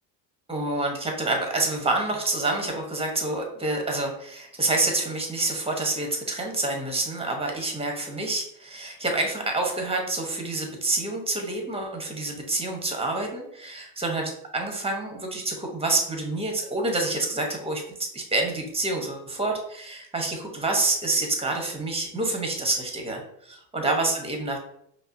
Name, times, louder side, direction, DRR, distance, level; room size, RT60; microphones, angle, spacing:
voice 1, 0.5-17.8 18.1-24.6, right 2 dB, 10° right, 2 dB, 1.0 m, -27 dB
5.3 x 2.1 x 2.6 m, 0.71 s
hypercardioid pair, 75°, 49 cm